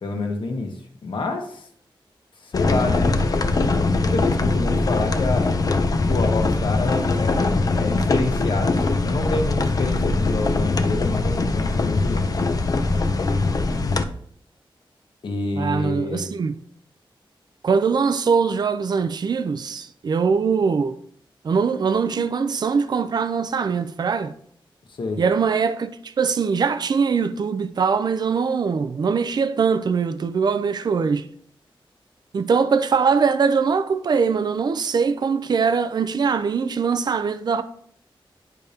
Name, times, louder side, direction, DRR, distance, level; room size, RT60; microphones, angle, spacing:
voice 1, 0.0-0.7 1.0-1.7 2.4-3.7 4.0-5.5 6.1-12.6 15.2-16.3 25.0-25.2, left 3 dB, 65° left, 1.2 m, -28 dB
sound 1, 2.5-14.1, left 3 dB, 40° left, 0.5 m, -21 dB
voice 2, 15.6-16.6 17.6-21.0 21.4-24.3 25.2-31.3 32.3-37.6, right 5 dB, 50° right, 0.4 m, -22 dB
10.5 x 5.1 x 2.8 m
wide cardioid pair, 160°, 9 cm